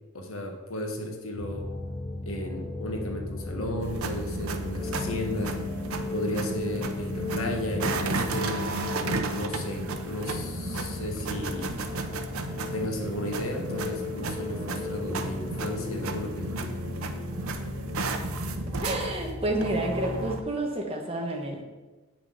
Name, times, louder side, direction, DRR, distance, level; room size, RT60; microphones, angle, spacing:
voice 1, 0.1-1.7 2.2-5.6 6.1-8.7 8.9-11.7 12.7-16.8, left 1 dB, 75° left, 3 dB, 1.5 m, -34 dB
sound 1, 1.3-20.4, left 2 dB, 35° left, 1.8 m, -36 dB
sound 2, 3.8-20.4, right 3 dB, 80° right, 0.8 m, -34 dB
voice 2, 18.8-21.6, right 1 dB, 25° right, 1 dB, 1.3 m, -29 dB
8.6 x 6.1 x 5.5 m, 1.2 s
head